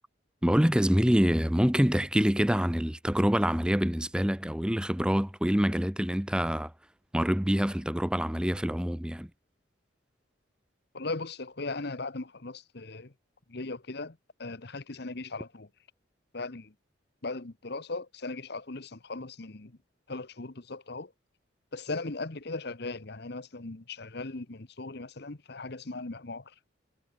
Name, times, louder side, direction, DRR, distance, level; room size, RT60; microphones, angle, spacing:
voice 1, 0.4-6.7 7.1-9.3, equal, 5° right, 0.7 m, -26 dB
voice 2, 10.9-13.1 13.5-15.7 16.3-16.7 17.2-19.8 20.1-21.1 21.7-26.5, left 3 dB, 55° left, 1.2 m, -38 dB
head